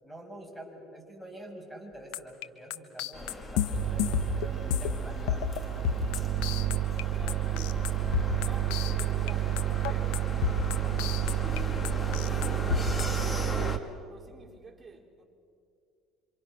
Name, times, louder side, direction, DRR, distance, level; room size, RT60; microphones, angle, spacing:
voice 1, 0.0-5.9, right 1 dB, 5° left, 6.5 m, -47 dB
sound 1, 2.1-5.0 5.3-5.6 5.8-7.0 7.3-9.3 9.6-11.6 11.8-13.0, left 10 dB, 80° left, 1.1 m, -31 dB
sound 2, 3.1-13.8, left 2 dB, 25° left, 2.1 m, -38 dB
sound 3, 3.7-13.8, right 15 dB, 65° right, 0.6 m, -30 dB
voice 2, 7.1-7.9 8.4-10.3 11.2-15.2, right 4 dB, 20° right, 4.6 m, -50 dB
27.0 x 26.5 x 6.2 m
supercardioid pair, 95°, 0 cm